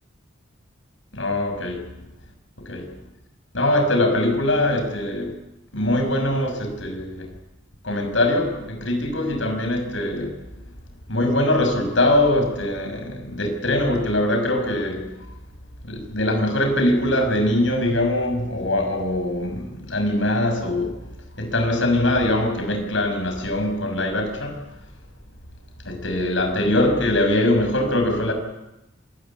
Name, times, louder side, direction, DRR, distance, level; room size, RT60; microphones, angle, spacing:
voice 1, 1.1-1.8 2.6-2.9 3.5-5.3 5.7-7.3 7.8-10.4 11.1-15.1 15.8-20.9 21.4-24.6 25.8-28.3, left 1 dB, 75° left, 5 dB, 6.2 m, -22 dB
26.5 x 18.0 x 8.5 m, 0.93 s
head